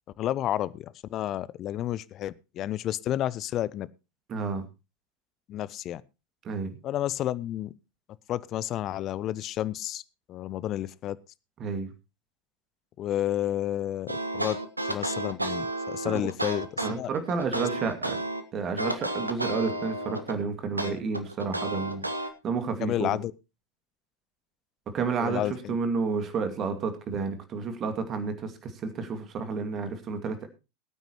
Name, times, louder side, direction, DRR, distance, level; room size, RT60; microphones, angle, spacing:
voice 1, 0.2-3.9 5.5-6.0 6.8-7.7 8.3-10.0 10.3-11.2 13.0-14.6 14.9-17.1 17.5-17.7 22.8-23.3 25.2-25.8, left 12 dB, 35° left, 20 dB, 0.6 m, -31 dB
voice 2, 4.3-4.6 6.4-6.8 11.6-11.9 16.0-16.2 16.8-18.2 18.5-22.0 22.4-23.2 24.9-25.4 25.7-30.5, right 5 dB, 30° right, 8 dB, 2.3 m, -31 dB
sound 1, 14.1-18.4 18.8-20.4 20.8-22.3, right 1 dB, 85° right, 1.4 m, -32 dB
21.0 x 9.1 x 3.1 m, 0.29 s
figure-of-eight pair, 90°, 0 cm